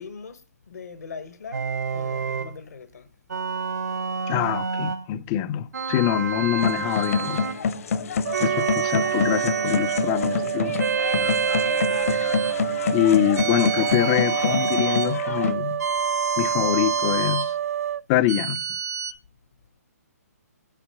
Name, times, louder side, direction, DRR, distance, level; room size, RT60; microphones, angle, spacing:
voice 1, 0.0-3.1, left 5 dB, 75° left, 1.2 m, -41 dB
sound 1, 1.5-2.5 3.3-5.0 5.7-7.6 8.3-10.1 10.8-12.6 13.4-15.2 15.8-17.5 18.3-19.1, right 5 dB, 80° right, 0.9 m, -28 dB
voice 2, 4.3-7.4 8.4-10.7 12.1-12.3 12.9-15.8 16.4-17.5 18.1-18.6, left 12 dB, 25° left, 0.4 m, -24 dB
sound 2, 6.6-15.5, left 5 dB, 60° left, 0.9 m, -27 dB
sound 3, 8.2-18.0, right 10 dB, 60° right, 0.4 m, -29 dB
9.0 x 4.4 x 5.6 m
hypercardioid pair, 145°, 9 cm